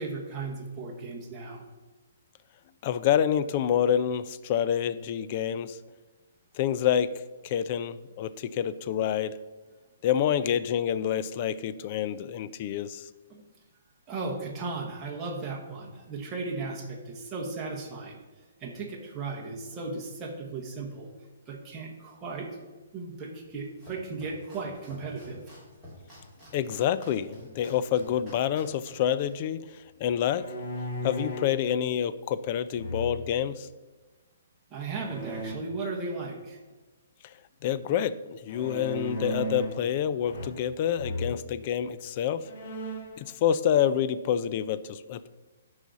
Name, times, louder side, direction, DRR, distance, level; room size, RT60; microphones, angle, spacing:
voice 1, 0.0-1.6 13.3-13.5 14.1-18.2 18.6-21.1 21.5-22.6 22.9-25.5 34.7-36.6, right 3 dB, 15° right, -2 dB, 1.2 m, -36 dB
voice 2, 2.8-5.8 6.5-7.1 7.4-9.4 10.0-13.1 26.5-29.7 30.0-30.5 31.0-33.7 37.6-42.5 43.2-45.3, left 9 dB, 30° left, 14 dB, 0.3 m, -27 dB
Domestic sounds home sounds, 23.4-30.4, left 1 dB, 5° left, 3.0 m, -51 dB
sound 1, 30.2-31.6 32.7-33.5 34.9-35.6 38.5-39.9 40.2-40.7 41.0-41.4 42.0-42.1 42.4-43.2, equal, 45° left, 1.4 m, -35 dB
12.0 x 4.9 x 4.0 m, 1.3 s
hypercardioid pair, 170°, 0 cm